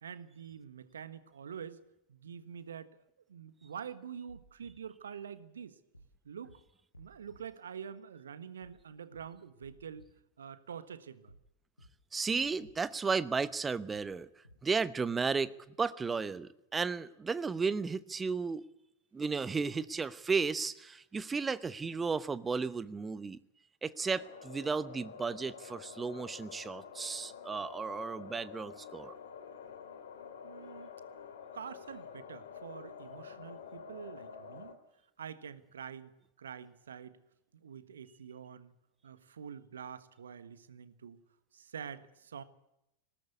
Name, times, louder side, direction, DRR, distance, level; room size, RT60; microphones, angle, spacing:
voice 1, 0.0-1.8 2.1-3.0 3.3-5.8 6.2-6.6 7.0-10.1 10.4-11.3 30.4-30.9 31.5-34.7 35.2-37.2 37.5-38.7 39.0-41.2 41.5-42.4, right 7 dB, 65° right, 14 dB, 1.4 m, -46 dB
sound 1, 4.3-4.7 5.9-6.1 6.4-6.6 6.9-7.4 8.6-8.8 9.1-9.2 9.6-10.1 11.3-11.5 11.8-11.9 12.3-12.7 13.9-14.1 14.4-14.6, right 1 dB, 85° left, 5.5 m, -56 dB
voice 2, 12.1-14.3 14.6-15.5 15.8-18.6 19.1-23.4 23.8-29.1, right 5 dB, 15° right, 17 dB, 0.9 m, -34 dB
sound 2, 24.1-34.7, left 7 dB, 60° left, 2.9 m, -49 dB
20.0 x 17.5 x 8.3 m, 0.86 s
figure-of-eight pair, 90°, 0 cm